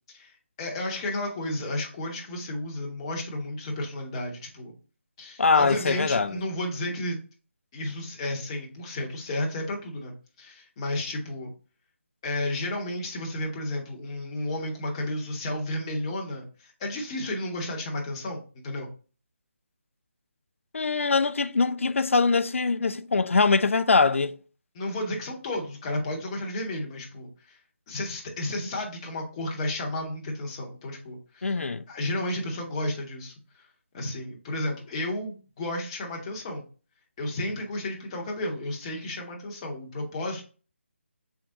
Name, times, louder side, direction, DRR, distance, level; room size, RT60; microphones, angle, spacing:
voice 1, 0.6-4.7 5.2-7.2 7.7-10.1 10.4-11.5 12.2-18.9 24.7-27.6 27.9-31.6 31.9-33.6 33.9-36.6 37.2-40.4, left 1 dB, 25° left, 0.9 m, -32 dB
voice 2, 5.4-6.4 20.7-24.4 31.4-31.8, left 4 dB, 75° left, 0.4 m, -23 dB
3.6 x 3.4 x 3.7 m
figure-of-eight pair, 155°, 7 cm